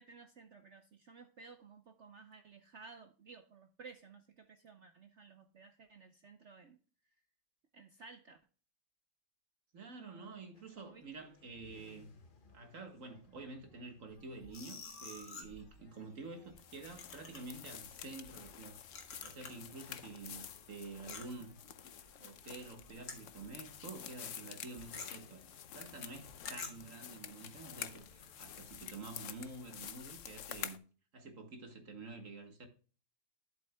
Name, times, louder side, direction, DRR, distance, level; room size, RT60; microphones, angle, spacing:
voice 1, 0.0-6.8 7.7-8.4 10.0-10.5 10.8-11.0, right 4 dB, 75° right, 0.6 m, -56 dB
voice 2, 9.7-12.1 12.5-18.8 19.2-21.6 22.2-25.4 25.7-30.8 31.1-32.7, right 3 dB, 45° right, 1.7 m, -49 dB
sound 1, 10.5-30.0, left 3 dB, 35° left, 1.0 m, -65 dB
sound 2, 14.1-19.8 20.0-23.7 24.0-24.1 24.4-26.9, left 4 dB, 50° left, 1.9 m, -51 dB
sound 3, 16.6-30.8, left 9 dB, 70° left, 0.7 m, -49 dB
11.0 x 7.8 x 2.2 m
omnidirectional pair, 2.1 m